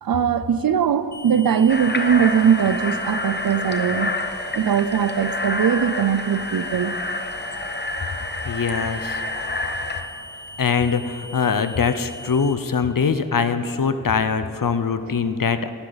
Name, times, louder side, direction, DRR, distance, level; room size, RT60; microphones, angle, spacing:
voice 1, 0.0-4.1 4.5-6.9, right 8 dB, 80° right, 13 dB, 0.5 m, -20 dB
sound 1, 1.1-12.5, equal, 10° right, 2.4 m, -41 dB
sound 2, 1.7-10.0, left 2 dB, 30° left, 1.0 m, -28 dB
voice 2, 8.4-9.2 10.6-15.7, left 5 dB, 70° left, 11 dB, 0.7 m, -22 dB
18.0 x 11.5 x 4.0 m, 3.0 s
wide cardioid pair, 45°, 34 cm